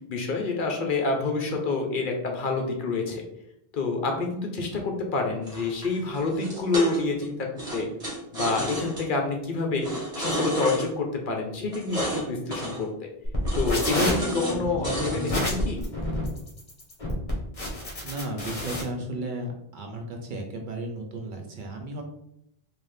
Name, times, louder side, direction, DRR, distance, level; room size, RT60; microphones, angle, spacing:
voice 1, 0.1-3.2 3.7-7.9 8.3-9.9 10.2-12.9 13.5-15.8, left 3 dB, 60° left, 2 dB, 0.8 m, -27 dB
sound 1, 5.5-7.2 7.6-9.0 9.8-10.9 11.7-12.2 12.5-12.8 13.4-14.6 14.8-15.7, right 1 dB, 35° right, 1.4 m, -32 dB
sound 2, 13.2-18.8, left 1 dB, 35° left, 1.0 m, -30 dB
voice 2, 17.7-22.0, right 1 dB, 55° right, 2 dB, 0.7 m, -34 dB
3.9 x 2.6 x 3.2 m, 0.78 s
omnidirectional pair, 1.1 m